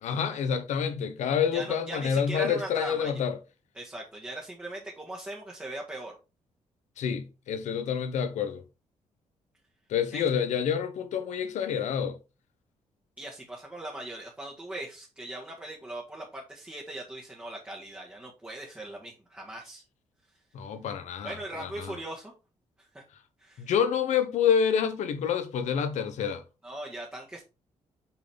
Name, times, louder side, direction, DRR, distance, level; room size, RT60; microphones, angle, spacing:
voice 1, 0.0-3.4 7.0-8.6 9.9-12.2 20.5-22.0 23.6-26.4, left 7 dB, 80° left, 1.1 m, -28 dB
voice 2, 1.5-3.2 3.7-6.2 10.1-10.3 13.2-19.8 21.2-22.3 22.9-23.0 23.4-23.7 26.6-27.4, right 1 dB, 10° right, 1.7 m, -39 dB
7.3 x 4.0 x 3.5 m
cardioid pair, 95°, 12 cm